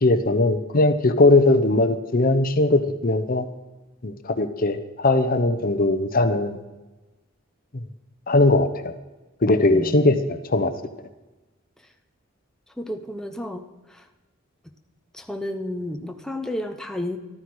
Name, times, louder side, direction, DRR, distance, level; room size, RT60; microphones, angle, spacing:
voice 1, 0.0-3.5 4.0-6.6 8.3-8.9 9.4-10.7, left 2 dB, 45° left, 9 dB, 0.9 m, -19 dB
voice 2, 9.7-10.1 12.8-13.6 13.9-14.0 15.1-17.2, left 1 dB, 5° left, 4 dB, 0.9 m, -31 dB
13.5 x 13.0 x 4.8 m, 1.1 s
head